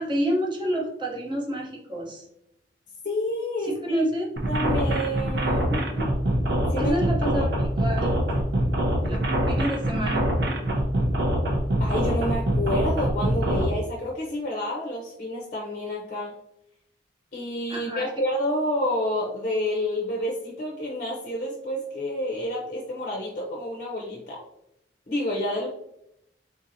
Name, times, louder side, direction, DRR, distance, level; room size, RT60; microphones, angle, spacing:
voice 1, 0.0-2.3 3.8-4.3 5.9-6.0 6.8-8.1 9.1-9.2 9.5-10.3 17.7-18.1, equal, 25° right, -2 dB, 0.7 m, -28 dB
voice 2, 3.0-4.0 4.5-5.8 6.7-7.0 11.8-16.3 17.3-24.4 25.1-25.7, left 1 dB, 45° left, -2 dB, 0.6 m, -29 dB
sound 1, 4.4-13.7, right 1 dB, 60° right, 0.6 m, -24 dB
3.8 x 2.7 x 2.6 m, 0.80 s
head